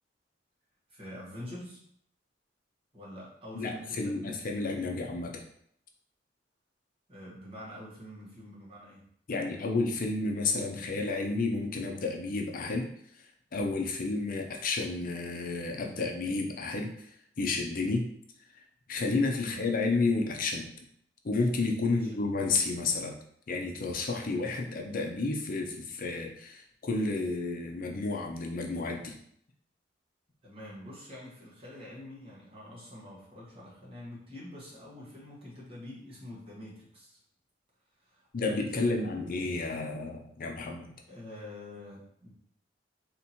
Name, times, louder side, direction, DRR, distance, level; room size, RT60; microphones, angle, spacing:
voice 1, 0.9-1.8 2.9-4.3 7.1-9.0 19.4-19.6 21.8-22.1 30.4-37.2 38.0-39.1 41.1-42.3, left 1 dB, 30° right, -6 dB, 1.4 m, -46 dB
voice 2, 3.5-5.4 9.3-12.9 13.5-18.1 18.5-20.7 21.2-23.2 23.5-29.2 38.3-40.9, left 3 dB, 50° left, 1 dB, 0.5 m, -31 dB
3.5 x 2.9 x 4.2 m, 0.68 s
head